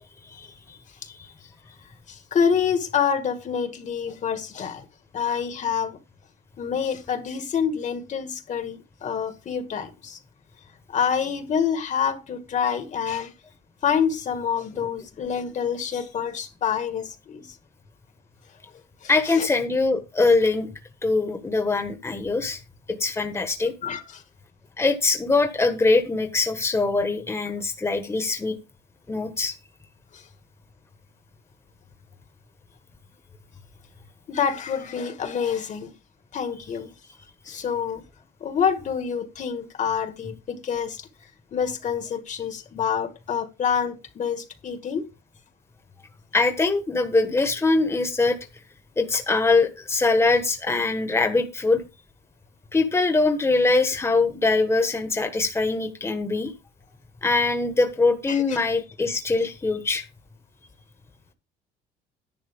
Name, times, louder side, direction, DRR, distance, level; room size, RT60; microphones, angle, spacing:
voice 1, 0.3-0.8 1.1-1.3 19.1-20.7 21.0-22.6 22.9-23.7 24.8-28.6 29.1-29.5 46.3-48.4 49.0-51.8 52.7-56.5 57.2-60.0, left 3 dB, 15° left, 1.4 m, -22 dB
voice 2, 2.1-4.9 5.1-6.0 6.6-10.2 10.9-13.3 13.8-17.6 19.0-19.5 23.8-24.2 30.1-30.3 34.3-35.9 36.3-36.9 37.5-38.0 38.4-41.1 41.5-45.1 58.3-58.6, left 7 dB, 45° left, 1.8 m, -27 dB
11.0 x 9.1 x 3.6 m
cardioid pair, 110°, 17 cm